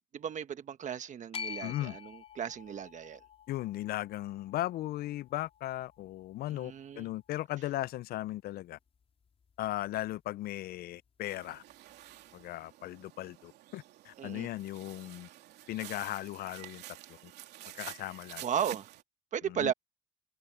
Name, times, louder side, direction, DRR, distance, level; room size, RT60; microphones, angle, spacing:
voice 1, 0.1-3.2 6.5-7.1 14.2-14.5 18.4-18.9 19.3-19.7, right 8 dB, 45° right, 1.4 m, -35 dB
sound 1, 1.3-7.6, left 7 dB, 35° left, 4.3 m, -48 dB
voice 2, 1.6-2.0 3.5-8.8 9.6-11.6 12.3-15.3 15.7-16.8 17.1-17.3 17.7-18.4 19.5-19.7, left 15 dB, 65° left, 0.4 m, -37 dB
sound 2, 11.2-19.0, right 15 dB, 80° right, 3.0 m, -49 dB
cardioid pair, 110°, 17 cm